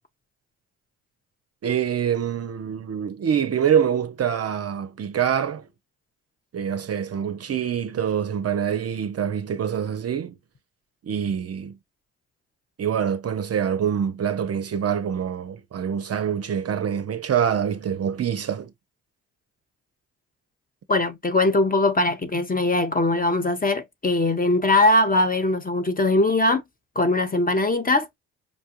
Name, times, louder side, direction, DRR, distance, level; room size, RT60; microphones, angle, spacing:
voice 1, 1.6-5.7 6.5-10.3 11.1-11.7 12.8-18.7, right 8 dB, 40° right, 0.5 m, -25 dB
voice 2, 20.9-26.6 27.0-28.1, left 2 dB, 25° left, 0.7 m, -21 dB
5.2 x 2.2 x 2.9 m
supercardioid pair, 50°, 38 cm